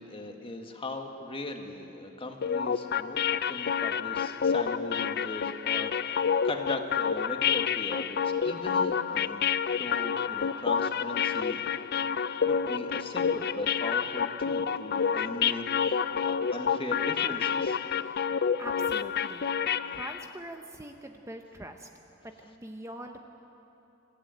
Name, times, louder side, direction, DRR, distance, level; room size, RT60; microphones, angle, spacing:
voice 1, 0.0-11.6 12.5-17.8, left 2 dB, 25° left, 4 dB, 1.7 m, -39 dB
sound 1, 2.4-20.3, left 7 dB, 50° left, 0.5 m, -29 dB
voice 2, 18.6-19.5 19.9-21.9 22.4-23.3, right 1 dB, 15° right, 4 dB, 0.9 m, -43 dB
26.0 x 15.0 x 9.1 m, 3.0 s
head